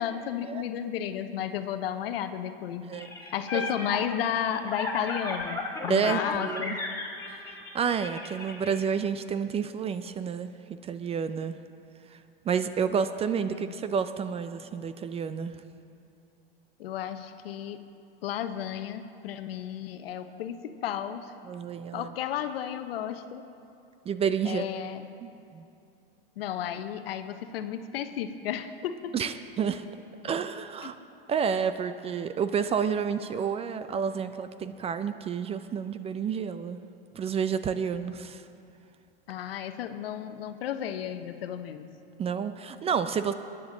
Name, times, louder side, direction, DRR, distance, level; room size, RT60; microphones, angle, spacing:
voice 1, 0.0-2.9 3.3-6.8 13.5-13.8 16.8-17.8 18.2-21.3 21.9-23.4 24.4-25.0 26.4-29.1 30.8-30.9 39.3-41.9, left 9 dB, 75° left, 9 dB, 0.9 m, -33 dB
voice 2, 2.8-3.6 5.9-6.8 7.3-11.6 12.1-12.2 12.4-15.6 21.5-22.1 24.1-24.6 25.2-25.7 29.1-29.9 30.2-31.0 31.3-36.8 37.1-38.4 42.2-43.3, right 7 dB, 20° right, 11 dB, 0.4 m, -30 dB
sound 1, 2.9-8.7, left 3 dB, 10° left, 1.9 m, -35 dB
21.0 x 10.0 x 3.9 m, 2.6 s
hypercardioid pair, 105°, 30 cm